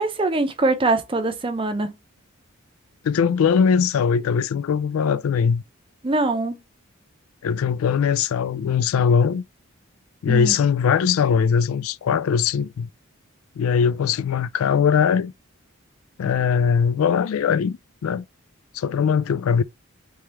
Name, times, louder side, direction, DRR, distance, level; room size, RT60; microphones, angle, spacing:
voice 1, 0.0-1.9 6.0-6.6 10.3-10.6 11.0-11.1, right 2 dB, 25° right, 0.6 m, -23 dB
voice 2, 3.0-5.6 7.4-9.4 10.2-12.9 13.6-15.3 16.2-18.2 18.7-19.6, left 6 dB, 80° left, 0.3 m, -20 dB
3.4 x 3.3 x 2.9 m
head